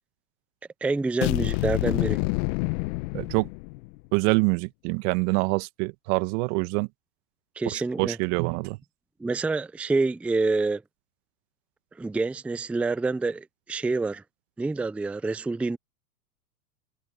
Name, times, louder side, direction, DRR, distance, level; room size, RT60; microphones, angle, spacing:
voice 1, 0.8-2.2 7.6-8.2 9.2-10.8 12.0-14.2 14.6-15.8, right 3 dB, 5° right, 0.5 m, -27 dB
sound 1, 1.2-4.0, left 26 dB, 50° left, 1.6 m, -27 dB
voice 2, 3.1-3.5 4.1-6.9 7.7-8.8, right 29 dB, 45° right, 1.4 m, -25 dB
hypercardioid pair, 110°, 48 cm